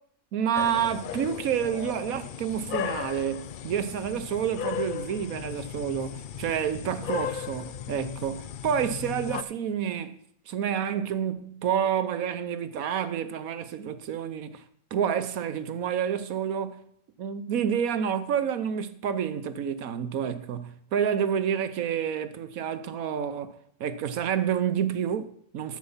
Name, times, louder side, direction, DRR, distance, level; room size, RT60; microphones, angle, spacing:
voice 1, 0.3-10.1 10.5-14.6 14.9-16.8 17.2-25.8, right 8 dB, 80° right, 1.3 m, -29 dB
sound 1, 0.6-9.4, left 9 dB, 85° left, 0.4 m, -36 dB
10.5 x 8.5 x 5.6 m
omnidirectional pair, 1.5 m